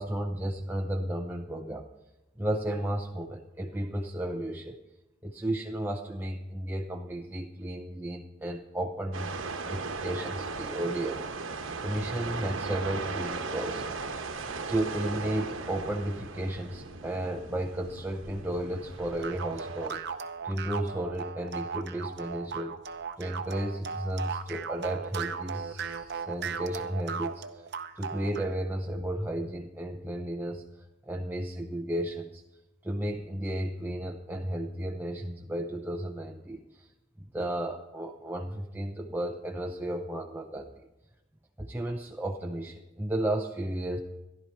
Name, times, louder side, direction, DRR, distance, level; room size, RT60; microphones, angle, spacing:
voice 1, 0.0-1.9 2.4-4.8 5.2-9.3 9.6-13.8 14.1-14.2 14.7-20.1 20.4-22.8 23.1-27.7 28.0-32.4 32.8-36.9 37.2-40.7 41.6-44.0, right 1 dB, 10° right, 1 dB, 0.5 m, -33 dB
sound 1, 9.1-19.9, right 4 dB, 75° right, 1.0 m, -37 dB
sound 2, 19.2-28.5, right 6 dB, 55° right, 0.7 m, -37 dB
14.5 x 11.5 x 4.4 m, 1.0 s
head